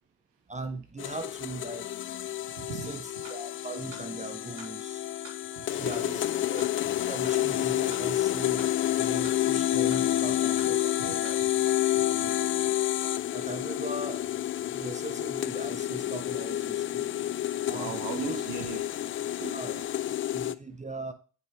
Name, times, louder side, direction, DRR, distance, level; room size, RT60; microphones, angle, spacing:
voice 1, 0.5-1.9 2.7-5.1 5.7-6.6 7.0-8.7 9.0-11.4 13.3-14.4 14.6-17.1 17.7-17.9 18.3-18.4 19.5-21.1, right 2 dB, 15° right, 9 dB, 0.8 m, -40 dB
sound 1, 1.0-20.5, left 13 dB, 30° left, 0.4 m, -29 dB
voice 2, 2.6-2.9 5.6-6.2 11.0-11.1 11.9-12.5 17.7-18.8 19.3-19.6, right 5 dB, 75° right, 4 dB, 2.0 m, -38 dB
sound 2, 3.2-3.4 3.9-4.0 4.6-4.7 5.2-5.4 5.9-6.0 6.6-6.7 7.2-7.4 7.9-8.0 8.6-8.7 9.2-9.4 9.9-10.0 10.6-10.7 11.2-11.4, right 1 dB, 60° right, 3.6 m, -46 dB
9.4 x 5.3 x 3.2 m, 0.37 s
hypercardioid pair, 65°, 48 cm